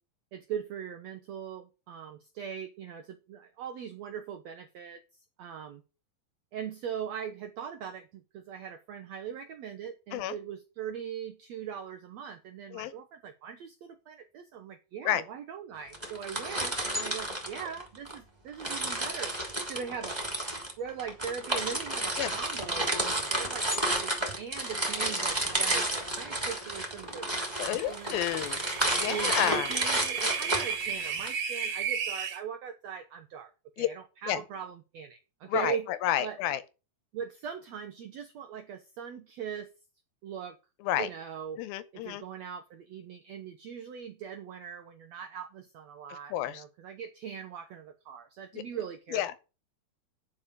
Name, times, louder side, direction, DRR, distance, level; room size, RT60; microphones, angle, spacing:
voice 1, 0.3-5.0 5.4-5.8 6.5-20.2 20.8-28.5 29.1-33.5 33.8-35.9 36.2-36.4 37.1-39.7 40.2-40.6 41.0-41.6 41.9-49.2, right 8 dB, 80° right, 1.5 m, -40 dB
sound 1, 15.9-18.2 18.6-31.3, right 1 dB, 10° right, 2.6 m, -31 dB
voice 2, 27.6-28.6 28.9-29.7 33.8-33.9 34.3-34.4 35.5-36.6 40.8-41.1 41.6-42.2 46.1-46.6 48.5-48.6 49.1-49.4, left 12 dB, 80° left, 2.6 m, -30 dB
sound 2, 28.1-32.4, right 7 dB, 60° right, 2.5 m, -34 dB
9.8 x 5.5 x 6.4 m
omnidirectional pair, 4.2 m